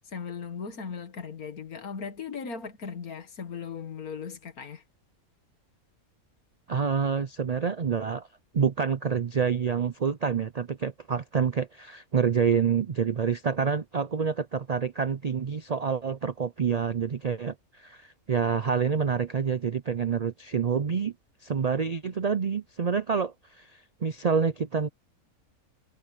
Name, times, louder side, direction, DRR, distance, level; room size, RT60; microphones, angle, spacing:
voice 1, 0.1-4.8, left 6 dB, 85° left, 2.2 m, -38 dB
voice 2, 6.7-8.3 8.5-21.1 21.4-23.7 24.0-24.9, right 6 dB, 60° right, 0.4 m, -27 dB
omnidirectional pair, 1.5 m